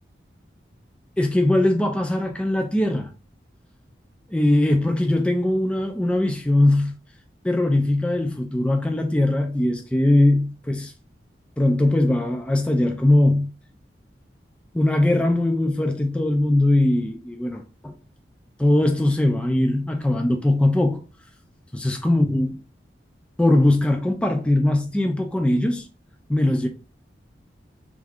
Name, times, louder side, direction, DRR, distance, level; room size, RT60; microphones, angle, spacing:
voice 1, 1.2-3.1 4.3-6.9 7.4-10.9 11.6-13.5 14.7-17.9 18.6-21.0 21.7-22.6 23.4-25.9 26.3-26.7, left 1 dB, 5° left, 0.3 m, -20 dB
4.9 x 3.6 x 2.4 m
head